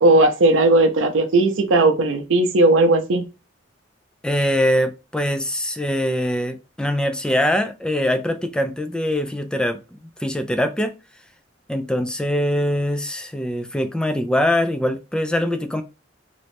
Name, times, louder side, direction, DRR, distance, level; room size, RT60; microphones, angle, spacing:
voice 1, 0.0-3.2, right 2 dB, 85° right, 0.5 m, -16 dB
voice 2, 4.2-10.9 11.7-15.8, equal, 5° left, 0.3 m, -23 dB
3.0 x 2.6 x 3.3 m
head